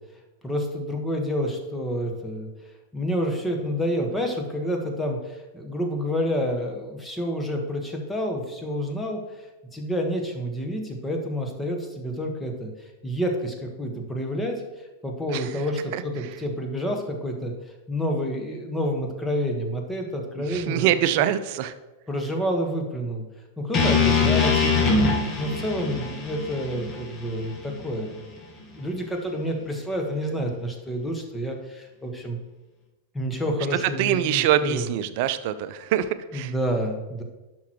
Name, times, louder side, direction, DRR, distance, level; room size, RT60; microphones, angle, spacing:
voice 1, 0.4-2.5 2.9-14.6 15.0-17.5 17.9-20.9 21.2-21.3 22.1-23.2 23.6-25.0 25.4-28.2 28.7-32.4 33.1-34.9 36.3-37.2, equal, 10° left, 2 dB, 1.5 m, -29 dB
voice 2, 20.5-21.7 34.0-36.5, right 11 dB, 55° right, 13 dB, 0.5 m, -24 dB
sound 1, 23.7-27.9, left 4 dB, 30° left, 1.5 m, -23 dB
11.0 x 6.2 x 3.1 m, 1.1 s
hypercardioid pair, 100°, 0 cm